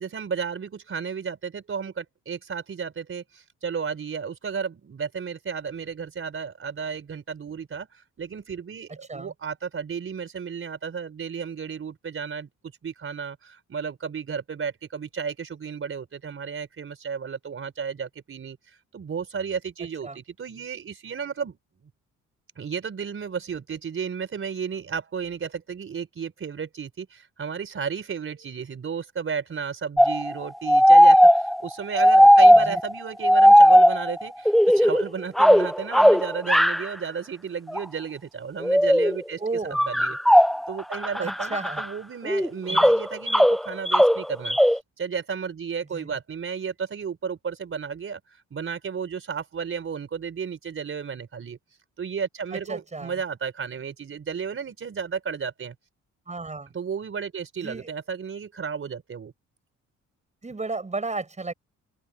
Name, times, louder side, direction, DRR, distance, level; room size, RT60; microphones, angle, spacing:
voice 1, 0.0-12.5 12.8-21.6 22.6-51.6 52.0-55.7 56.7-59.3, right 6 dB, 45° right, 4.4 m, -33 dB
sound 1, 30.0-32.9 33.2-35.0 35.4-36.9 37.7-37.8 38.6-39.2 39.7-41.8 42.3-44.8, equal, ahead, 0.7 m, -16 dB
voice 2, 39.4-39.8 41.2-41.8 42.7-42.9 45.9-46.2 52.5-53.2 56.3-56.7 57.6-57.9 60.4-61.5, right 3 dB, 25° right, 6.8 m, -33 dB
open air
cardioid pair, 90°, 30 cm